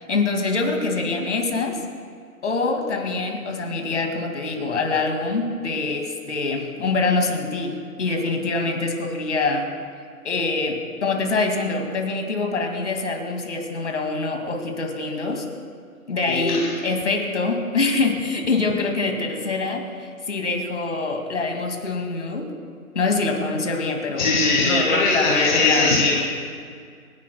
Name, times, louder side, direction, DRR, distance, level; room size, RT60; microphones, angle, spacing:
voice 1, 0.1-1.8 2.4-9.7 10.2-15.5 16.1-22.5 22.9-24.4 24.6-25.9, left 3 dB, 50° left, 3 dB, 2.2 m, -25 dB
voice 2, 16.3-16.8 24.2-26.2, left 3 dB, 30° left, -3 dB, 1.2 m, -20 dB
28.5 x 11.0 x 2.2 m, 2.1 s
figure-of-eight pair, 160°, 45 cm